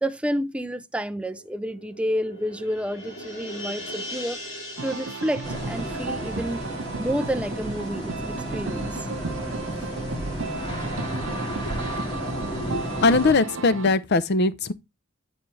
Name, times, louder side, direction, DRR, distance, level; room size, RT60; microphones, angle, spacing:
voice 1, 0.0-4.4 4.8-6.6 7.0-9.1, equal, 5° right, 0.4 m, -29 dB
sound 1, 1.0-8.0 8.3-8.4, equal, 80° left, 2.8 m, -40 dB
sound 2, 4.8-13.9, right 3 dB, 65° right, 0.8 m, -34 dB
sound 3, 5.4-13.3, equal, 25° left, 2.1 m, -33 dB
voice 2, 11.6-14.7, left 3 dB, 55° left, 0.6 m, -23 dB
9.2 x 4.1 x 3.2 m
head